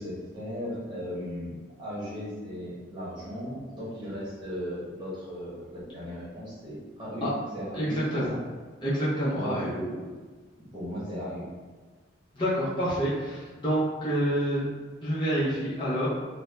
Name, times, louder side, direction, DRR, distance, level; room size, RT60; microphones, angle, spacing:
voice 1, 0.0-1.5 1.8-7.3 7.5-8.4 9.3-10.1 10.7-11.4, equal, 25° right, -9 dB, 1.1 m, -36 dB
voice 2, 7.7-8.3 8.8-9.7 12.3-14.7 15.0-16.1, equal, 25° left, -9 dB, 0.7 m, -27 dB
2.6 x 2.1 x 3.3 m, 1.4 s
head